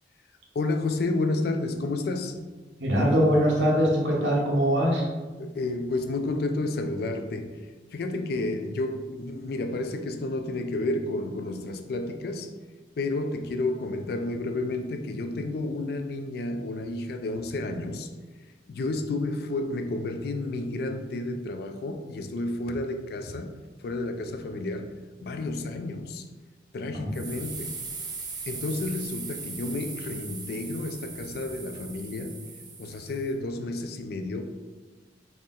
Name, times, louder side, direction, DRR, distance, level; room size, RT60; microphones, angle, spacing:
voice 1, 0.5-2.4 5.4-12.5 13.0-18.1 18.7-23.5 23.8-24.9 25.2-26.2 26.7-27.8 28.5-32.4 32.8-34.4, left 2 dB, 60° left, 0.3 m, -31 dB
voice 2, 2.8-5.0 26.9-27.1, equal, 90° right, 1.0 m, -22 dB
sound 1, 27.1-33.3, right 4 dB, 25° right, 0.5 m, -39 dB
4.2 x 2.1 x 3.7 m
head